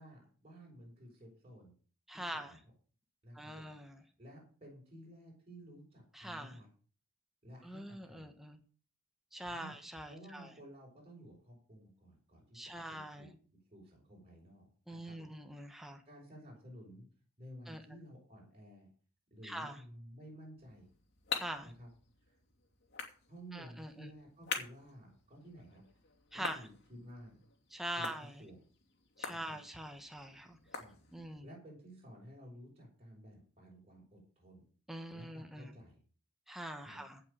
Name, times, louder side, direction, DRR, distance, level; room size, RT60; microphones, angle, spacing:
voice 1, 0.0-1.7 2.1-2.6 3.2-3.7 4.2-6.7 7.4-8.3 9.5-9.7 10.1-13.3 13.7-15.3 15.7-17.0 17.4-18.9 19.3-20.9 21.6-21.9 22.3-22.4 23.3-25.8 26.3-27.4 28.0-28.1 28.4-28.6 29.3-29.6 30.8-30.9 31.2-34.7 35.1-36.0 36.8-37.0, equal, 30° right, -3 dB, 5.6 m, -54 dB
voice 2, 2.1-2.6 3.3-4.0 6.1-6.6 7.6-8.6 9.3-10.5 12.5-13.3 14.9-16.0 17.7-17.8 19.4-19.8 21.3-21.7 23.5-24.1 26.3-26.7 27.7-28.4 29.2-30.6 31.1-31.5 34.9-35.8 36.5-37.2, right 1 dB, ahead, 4 dB, 1.4 m, -44 dB
sound 1, 20.6-31.5, left 6 dB, 55° left, 2.8 m, -46 dB
16.0 x 5.9 x 6.9 m, 0.41 s
head